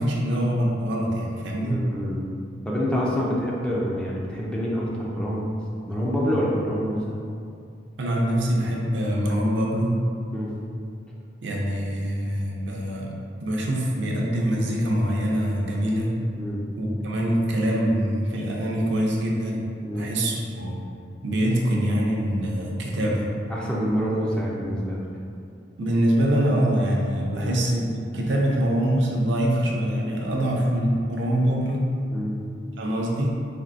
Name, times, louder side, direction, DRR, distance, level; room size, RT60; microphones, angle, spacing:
voice 1, 0.0-1.8 8.0-9.9 11.4-13.1 13.4-16.1 16.8-19.6 19.9-20.7 21.2-23.3 25.8-27.8 28.1-31.9 32.8-33.3, equal, 65° right, -2 dB, 0.6 m, -24 dB
voice 2, 1.6-2.2 2.7-5.4 5.9-7.1 10.3-10.5 16.4-16.6 19.8-20.1 22.9-23.2 23.5-25.1 27.3-27.5 32.1-32.4, equal, 5° left, -5 dB, 0.4 m, -27 dB
4.4 x 2.7 x 2.5 m, 2.4 s
head